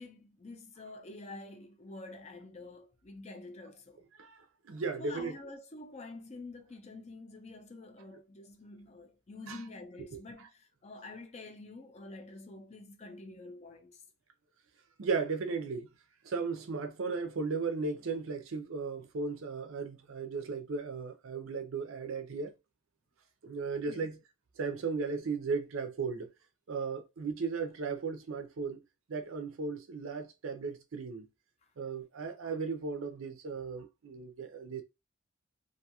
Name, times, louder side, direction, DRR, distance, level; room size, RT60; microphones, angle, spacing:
voice 1, 0.0-4.1 5.0-14.0 23.9-24.1, left 2 dB, 30° left, 0.4 m, -48 dB
voice 2, 4.2-5.3 9.5-9.6 10.1-10.2 15.0-15.9 16.2-22.5 23.4-24.2 24.6-26.3 26.7-28.8 29.1-31.3 31.8-34.8, right 4 dB, 65° right, 0.5 m, -36 dB
2.6 x 2.3 x 2.8 m
head